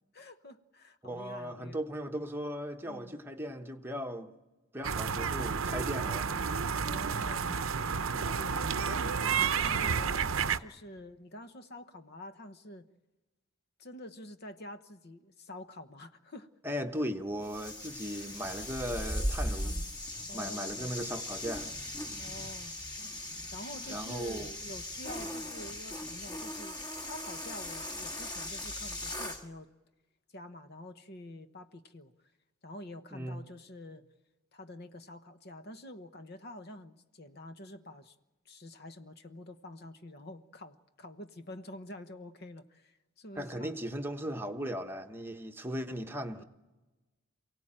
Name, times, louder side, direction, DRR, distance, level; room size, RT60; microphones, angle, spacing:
voice 1, 0.1-1.8 2.9-3.2 6.7-10.3 10.6-12.9 13.8-16.5 19.5-19.8 20.3-20.9 22.2-22.8 23.5-29.7 30.3-32.1 32.6-34.0 34.5-38.1 38.4-43.8 46.4-46.5, left 1 dB, 50° left, 1.1 m, -47 dB
voice 2, 1.0-4.3 4.7-6.3 16.6-19.8 20.3-21.7 23.9-24.5 33.1-33.4 43.4-46.4, equal, 10° right, 1.1 m, -37 dB
sound 1, 4.8-10.6, right 6 dB, 70° right, 0.8 m, -31 dB
sound 2, 17.4-29.4, left 1 dB, 20° left, 1.7 m, -38 dB
28.5 x 17.0 x 8.9 m
head